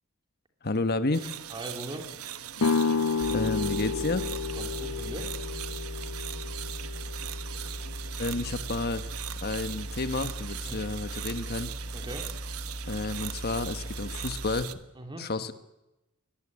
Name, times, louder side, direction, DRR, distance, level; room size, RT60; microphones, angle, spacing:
voice 1, 0.6-1.3 3.3-4.2 8.2-9.1 9.4-11.7 12.9-14.7 15.2-15.5, left 2 dB, 45° left, 10 dB, 1.3 m, -30 dB
sound 1, 1.1-14.8, right 11 dB, 85° right, 1.3 m, -40 dB
voice 2, 1.5-2.1 4.5-5.3 10.6-10.8 11.9-12.3 14.9-15.3, right 1 dB, 20° right, 4 dB, 3.4 m, -40 dB
sound 2, 2.6-8.3, left 5 dB, 90° left, 0.8 m, -31 dB
sound 3, 3.2-14.6, equal, 65° right, 1.7 m, -39 dB
23.0 x 18.0 x 9.9 m, 0.96 s
head